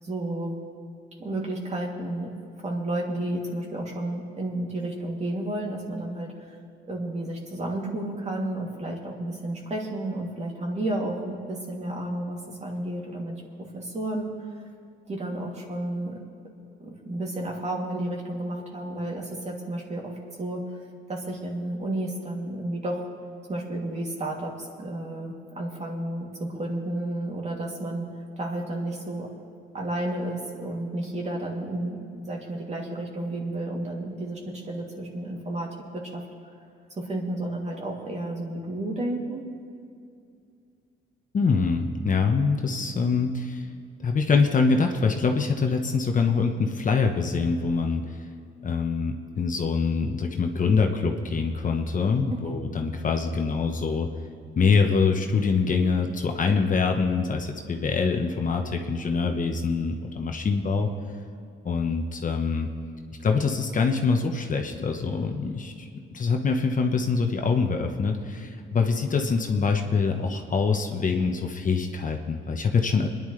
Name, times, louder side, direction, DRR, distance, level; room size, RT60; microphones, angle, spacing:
voice 1, 0.0-0.6 1.2-6.6 6.8-13.4 13.7-14.3 15.1-16.2 16.8-23.1 23.5-28.0 28.4-29.3 29.7-36.2 37.0-39.4 52.3-52.5, right 1 dB, 35° right, -2 dB, 2.9 m, -32 dB
voice 2, 41.3-43.7 44.0-48.2 48.6-54.1 54.6-60.9 61.6-62.7 63.2-73.1, left 4 dB, 40° left, 3 dB, 1.2 m, -24 dB
27.0 x 10.5 x 3.3 m, 2.4 s
cardioid pair, 90°, 20 cm